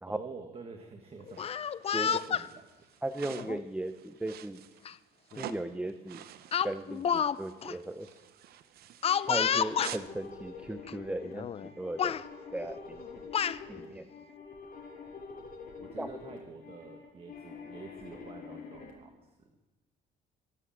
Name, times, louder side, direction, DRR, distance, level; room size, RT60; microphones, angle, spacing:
voice 1, 0.1-1.7 2.0-2.9 13.7-14.0 15.8-19.5, right 4 dB, 35° right, 4 dB, 1.6 m, -48 dB
Speech, 1.3-2.5 3.4-3.6 4.9-5.0 5.3-5.6 6.5-7.4 7.6-7.7 9.0-10.0 10.9-11.0 11.3-11.7 12.0-12.2 13.0-13.6, left 8 dB, 35° left, 0.5 m, -29 dB
sound 1, 1.3-10.1, right 11 dB, 65° right, 0.8 m, -48 dB
voice 2, 3.0-4.6 5.4-6.2 6.6-8.1 9.3-12.2 12.5-13.0 13.7-14.1 16.0-16.1, right 1 dB, 5° right, 9 dB, 0.7 m, -37 dB
sound 2, 9.0-18.9, left 5 dB, 60° left, 5.8 m, -46 dB
23.5 x 8.1 x 7.4 m, 1.2 s
cardioid pair, 110°, 17 cm